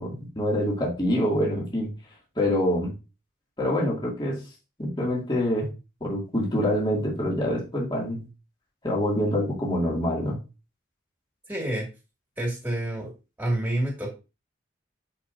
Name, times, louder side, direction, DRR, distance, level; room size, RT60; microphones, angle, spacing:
voice 1, 0.0-1.9 2.4-2.9 3.6-4.4 4.8-5.7 6.0-8.2 8.8-10.4, equal, 25° left, -4 dB, 2.4 m, -25 dB
voice 2, 11.5-11.9 12.4-13.1 13.4-14.1, right 1 dB, 10° right, -1 dB, 2.3 m, -28 dB
10.5 x 4.9 x 2.7 m, 0.29 s
head